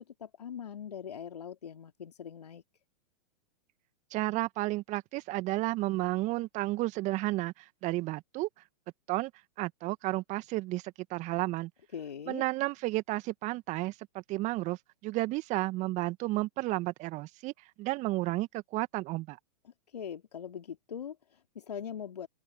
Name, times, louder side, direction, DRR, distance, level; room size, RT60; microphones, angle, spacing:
voice 1, 0.0-2.6 11.9-12.4 19.6-22.3, left 8 dB, 75° left, 3.0 m, -42 dB
voice 2, 4.1-8.5 9.1-9.3 9.6-11.7 12.3-19.4, right 19 dB, 35° right, 1.9 m, -32 dB
open air
figure-of-eight pair, 105°, 21 cm